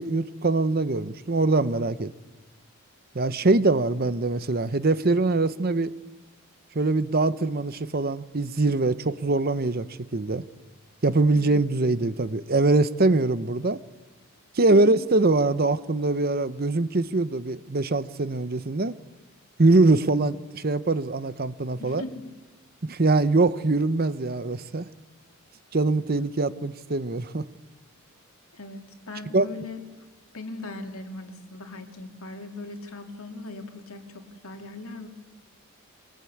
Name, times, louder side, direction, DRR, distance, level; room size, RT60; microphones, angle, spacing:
voice 1, 0.0-2.1 3.1-5.9 6.7-9.9 10.1-10.4 11.0-13.8 14.5-19.0 19.6-22.0 22.8-24.9 25.7-27.5 29.3-29.5, right 2 dB, 45° right, 14 dB, 0.8 m, -23 dB
voice 2, 14.6-15.0 21.8-22.3 26.5-26.6 28.5-29.8 30.3-35.1, left 2 dB, 75° left, 4 dB, 2.7 m, -39 dB
23.0 x 22.0 x 8.6 m, 1.2 s
head